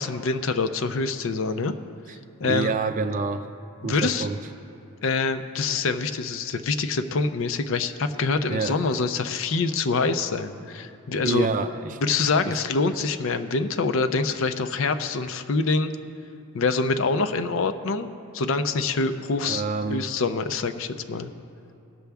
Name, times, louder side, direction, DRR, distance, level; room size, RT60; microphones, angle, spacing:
voice 1, 0.0-1.7 2.4-2.7 3.8-4.3 5.0-11.5 12.0-15.9 16.5-18.1 18.3-21.3, left 4 dB, 60° left, 9 dB, 0.5 m, -25 dB
voice 2, 2.4-3.4 3.8-4.4 8.5-8.8 11.2-12.0 12.4-12.6 19.4-20.1, right 4 dB, 35° right, 9 dB, 0.4 m, -27 dB
18.5 x 6.9 x 3.5 m, 2.6 s
head